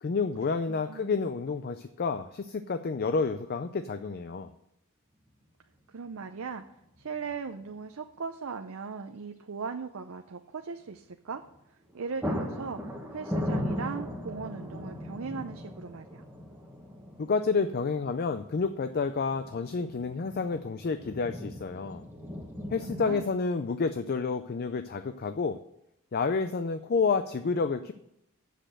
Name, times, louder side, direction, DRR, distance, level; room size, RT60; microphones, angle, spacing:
voice 1, 0.0-4.5 17.2-22.0 22.7-25.6 26.1-27.9, left 4 dB, 45° left, 10 dB, 0.4 m, -29 dB
voice 2, 0.7-1.1 5.9-6.6 7.0-11.4 11.9-12.8 13.1-16.2 22.8-23.3, right 5 dB, 65° right, 6 dB, 0.5 m, -38 dB
sound 1, 5.3-5.4 7.0-7.4 7.6-7.7 11.4-11.6 11.9-23.3, equal, 10° right, 1.3 m, -38 dB
7.5 x 6.7 x 7.6 m, 0.79 s
head